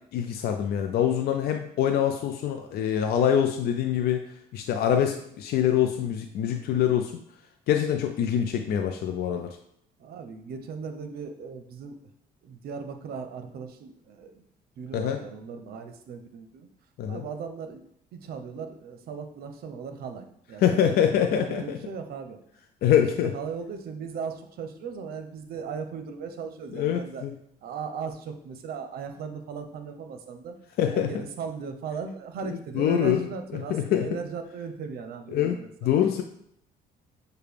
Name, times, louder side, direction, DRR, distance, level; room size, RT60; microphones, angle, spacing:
voice 1, 0.1-4.2 4.5-7.2 7.7-9.6 14.9-15.2 17.0-17.2 20.6-21.8 22.8-23.3 26.7-27.3 30.8-31.1 32.4-34.1 35.3-35.6 35.8-36.2, left 9 dB, 70° left, 5 dB, 0.5 m, -25 dB
voice 2, 10.0-12.0 12.4-14.4 14.8-16.7 17.1-17.9 18.1-22.4 22.9-27.2 27.6-30.6 30.9-36.0, right 6 dB, 65° right, 7 dB, 0.7 m, -37 dB
6.5 x 2.2 x 3.4 m, 0.71 s
cardioid pair, 90°, 17 cm